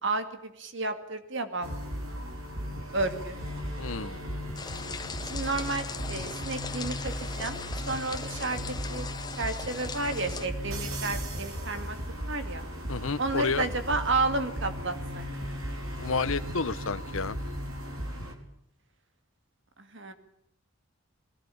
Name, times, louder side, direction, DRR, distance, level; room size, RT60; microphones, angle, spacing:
voice 1, 0.0-2.2 2.9-3.4 5.2-7.6 7.9-9.1 9.4-12.0 12.3-12.6 13.2-15.2 19.9-20.1, right 3 dB, 60° right, 8 dB, 2.4 m, -32 dB
sound 1, 1.6-18.4, equal, 85° right, 4.5 m, -36 dB
voice 2, 3.8-4.2 12.9-13.7 16.0-17.4, left 4 dB, 75° left, 15 dB, 1.0 m, -30 dB
sound 2, 4.6-10.5, left 5 dB, 20° left, 1.0 m, -40 dB
22.5 x 19.0 x 8.6 m, 0.75 s
head